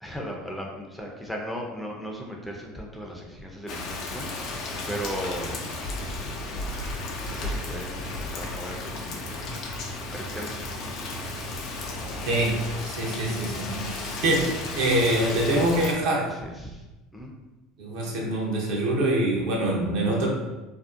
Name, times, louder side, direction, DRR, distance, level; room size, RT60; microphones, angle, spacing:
voice 1, 0.0-5.6 5.9-6.5 7.2-9.6 10.1-10.6 15.5-15.6 16.2-16.8 17.1-17.3, equal, 5° left, -1 dB, 0.5 m, -37 dB
Rain, 3.7-15.9, left 2 dB, 60° left, 0.4 m, -34 dB
voice 2, 12.3-12.6 12.8-16.3 17.8-20.3, right 1 dB, 70° right, -2 dB, 0.7 m, -25 dB
2.6 x 2.0 x 2.4 m, 1.1 s
hypercardioid pair, 85°, 0 cm